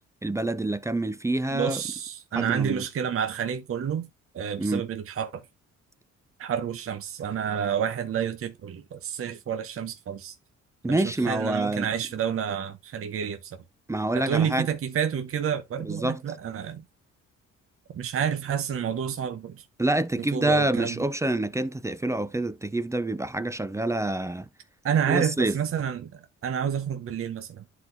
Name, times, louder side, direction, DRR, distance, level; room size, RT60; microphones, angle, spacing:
voice 1, 0.2-1.8 2.4-2.8 4.6-4.8 10.8-11.9 13.9-14.7 15.8-16.2 19.8-24.5 25.1-25.6, right 2 dB, 10° right, 0.4 m, -27 dB
voice 2, 1.5-4.1 4.3-5.4 6.4-10.3 10.9-13.6 14.1-16.8 17.9-19.6 20.2-21.0 24.8-27.6, right 8 dB, 50° right, 0.8 m, -29 dB
11.0 x 4.0 x 2.6 m
cardioid pair, 90°, 30 cm